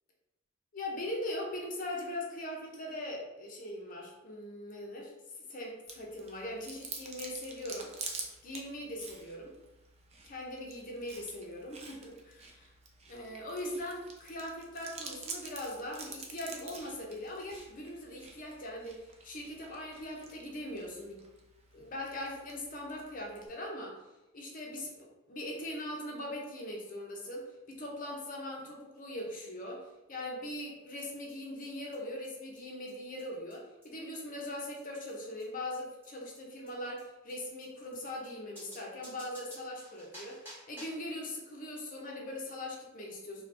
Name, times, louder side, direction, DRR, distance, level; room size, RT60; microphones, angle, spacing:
voice 1, 0.7-5.1 5.5-7.9 8.4-9.5 10.2-12.7 13.1-21.2 21.7-24.0 24.3-24.9 25.3-43.4, left 1 dB, 40° left, -1 dB, 0.7 m, -41 dB
Chewing mastication, 5.9-23.5, right 4 dB, 30° right, 0.5 m, -48 dB
sound 1, 31.0-31.1 31.3-31.4 31.6-31.7 31.9-32.0 32.2-32.3 32.5-32.6 32.9-33.0 33.2-33.3 33.5-33.6 33.8-33.9 34.1-34.2 34.4-34.5 34.8-34.9 35.1-35.2 35.4-35.5 35.7-35.8 36.0-36.1 36.3-36.4 36.7-36.8 37.0-37.1 37.3-37.4 37.6-37.7 37.9-38.0 38.2-38.3 38.6-41.1, right 1 dB, 10° right, 1.4 m, -52 dB
3.2 x 2.3 x 4.2 m, 1.0 s
head